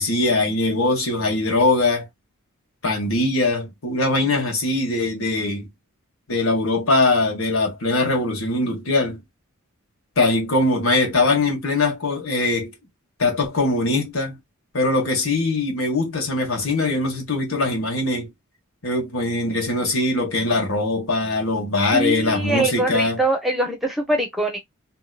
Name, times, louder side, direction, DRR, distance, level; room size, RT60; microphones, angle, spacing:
voice 1, 0.0-2.1 2.8-5.7 6.3-9.2 10.2-12.7 13.2-14.4 14.7-18.3 18.8-23.2, left 2 dB, 70° left, 1.5 m, -21 dB
voice 2, 21.9-24.6, right 2 dB, ahead, 0.9 m, -23 dB
2.9 x 2.8 x 2.4 m
head